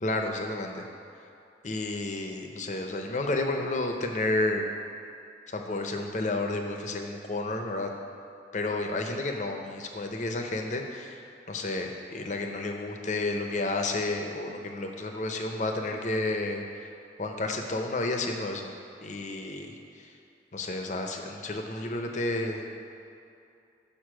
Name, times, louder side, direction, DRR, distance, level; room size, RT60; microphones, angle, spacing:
voice 1, 0.0-0.8 1.6-4.7 5.5-7.9 8.5-11.2 11.5-16.9 17.2-18.7 19.0-19.7 20.5-22.8, left 2 dB, 40° left, 3 dB, 0.6 m, -31 dB
6.5 x 5.4 x 6.2 m, 2.6 s
head